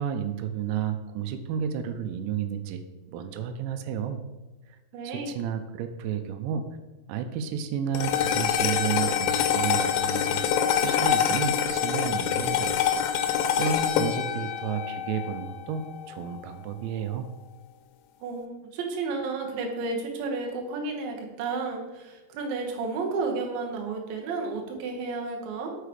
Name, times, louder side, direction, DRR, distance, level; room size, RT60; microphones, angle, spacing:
voice 1, 0.0-2.8 3.1-4.2 4.7-4.8 5.0-6.7 7.1-10.4 10.8-12.8 13.1-17.3, right 8 dB, 90° right, 8 dB, 2.9 m, -32 dB
voice 2, 4.9-5.3 18.2-25.7, right 3 dB, 70° right, 1 dB, 2.5 m, -32 dB
sound 1, 8.0-16.5, left 8 dB, 85° left, 2.7 m, -26 dB
6.3 x 5.6 x 5.0 m, 1.1 s
omnidirectional pair, 5.1 m